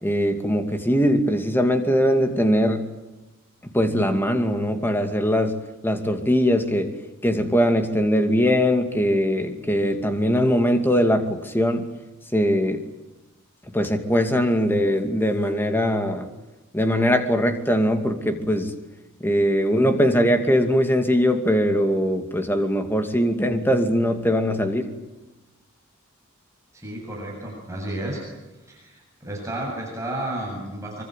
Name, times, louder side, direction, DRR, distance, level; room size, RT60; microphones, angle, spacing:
voice 1, 0.0-2.8 3.6-5.6 5.8-6.9 7.2-11.9 12.3-12.8 13.7-16.3 16.7-18.7 19.2-24.9, equal, 10° left, 6 dB, 2.5 m, -21 dB
voice 2, 26.7-28.2 28.7-31.0, right 1 dB, 15° right, -2 dB, 7.6 m, -32 dB
25.0 x 25.0 x 9.2 m, 1.1 s
head